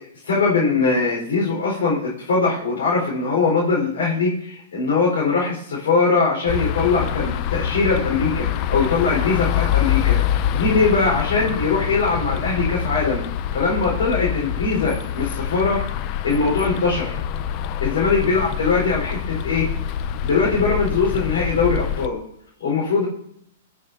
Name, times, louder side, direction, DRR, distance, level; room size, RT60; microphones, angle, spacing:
voice 1, 0.3-10.2 10.5-13.2 13.5-15.8 16.2-17.2 17.8-19.7 20.2-22.2 22.6-23.1, left 4 dB, 85° left, -5 dB, 4.7 m, -21 dB
sound 1, 6.5-22.1, left 10 dB, 35° left, 0.5 m, -25 dB
17.0 x 7.5 x 2.8 m, 0.72 s
hypercardioid pair, 150°, 0 cm